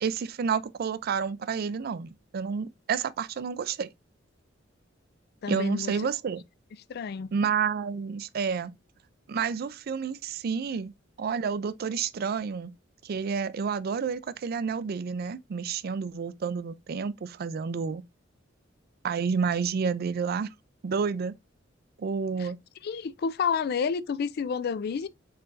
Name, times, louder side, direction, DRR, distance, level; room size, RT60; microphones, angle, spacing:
voice 1, 0.0-3.9 5.5-6.4 7.3-8.7 9.3-10.9 11.2-12.7 13.0-18.0 19.0-20.5 20.8-21.3 22.0-22.6, right 6 dB, 50° right, 0.4 m, -30 dB
voice 2, 5.4-6.0 6.9-7.3 22.4-22.5 22.8-25.1, left 6 dB, 55° left, 0.4 m, -30 dB
4.4 x 4.3 x 2.5 m
head